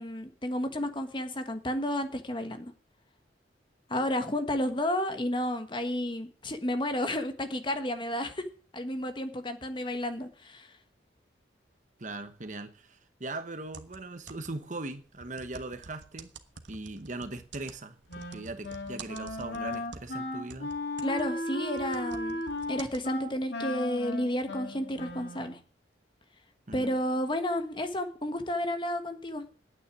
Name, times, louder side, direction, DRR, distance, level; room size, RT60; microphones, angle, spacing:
voice 1, 0.0-2.7 3.9-8.5 8.7-10.7 21.0-22.4 22.7-25.6 26.7-29.5, left 1 dB, 25° left, 1.4 m, -31 dB
voice 2, 12.0-16.3 16.7-18.0 18.3-20.7 26.7-26.9, right 2 dB, 45° right, 1.2 m, -39 dB
sound 1, 13.7-14.7 15.2-20.2 20.5-23.0, right 4 dB, 85° right, 1.3 m, -48 dB
Wind instrument woodwind instrument, 18.1-25.6, left 1 dB, 75° left, 2.4 m, -36 dB
9.6 x 9.2 x 9.7 m
head